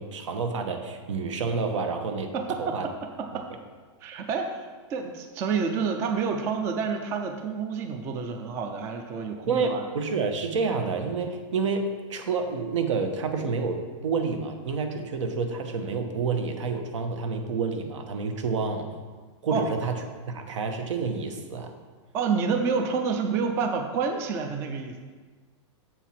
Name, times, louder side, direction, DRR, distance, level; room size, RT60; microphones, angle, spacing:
voice 1, 0.0-2.3 2.6-2.9 9.5-18.9 19.4-20.0 20.3-21.7, right 4 dB, 75° right, 6 dB, 1.1 m, -29 dB
voice 2, 2.3-2.9 3.2-3.5 4.0-9.9 19.5-19.7 22.1-25.0, right 5 dB, 15° right, 4 dB, 0.3 m, -29 dB
7.3 x 4.5 x 5.8 m, 1.4 s
supercardioid pair, 165°, 16 cm